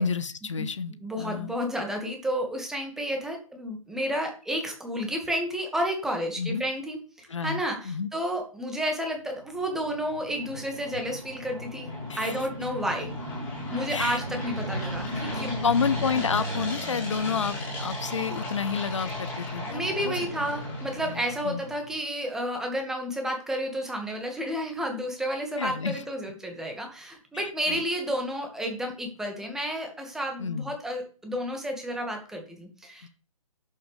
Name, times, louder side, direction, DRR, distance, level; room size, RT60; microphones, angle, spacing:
voice 1, 0.0-1.5 6.3-6.6 7.3-8.1 12.1-12.4 13.9-14.2 15.6-20.2 21.0-21.6 25.6-26.0 27.3-27.8 30.4-30.7 33.0-33.1, left 5 dB, 55° left, 16 dB, 0.9 m, -30 dB
voice 2, 1.0-11.9 12.2-13.1 13.7-15.6 19.7-33.1, equal, ahead, 3 dB, 1.9 m, -31 dB
sound 1, 9.6-21.9, left 1 dB, 15° left, 4.6 m, -35 dB
11.0 x 7.9 x 3.4 m, 0.38 s
figure-of-eight pair, 140°, 18 cm